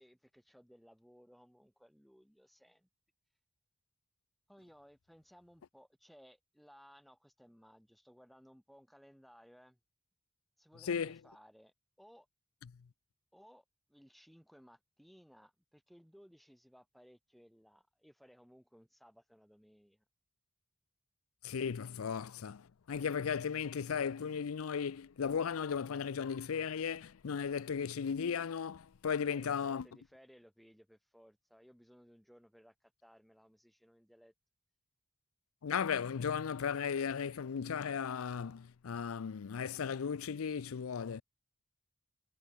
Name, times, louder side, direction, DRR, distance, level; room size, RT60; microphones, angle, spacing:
voice 1, 0.0-2.9 4.5-9.8 10.6-12.3 13.3-20.0 29.2-34.3, equal, ahead, 3.9 m, -61 dB
voice 2, 21.4-22.6 22.9-29.8 35.6-41.2, left 6 dB, 85° left, 0.5 m, -36 dB
head